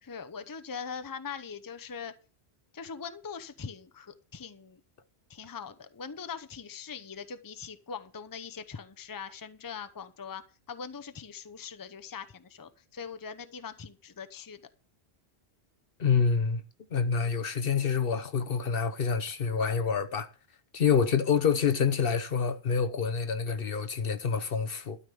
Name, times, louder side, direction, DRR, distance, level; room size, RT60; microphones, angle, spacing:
voice 1, 0.0-2.1 2.7-4.8 5.3-14.6, left 6 dB, 20° left, 0.7 m, -42 dB
voice 2, 16.0-16.6 16.9-20.3 20.7-25.0, left 6 dB, 60° left, 1.1 m, -27 dB
12.5 x 5.3 x 7.9 m
omnidirectional pair, 1.1 m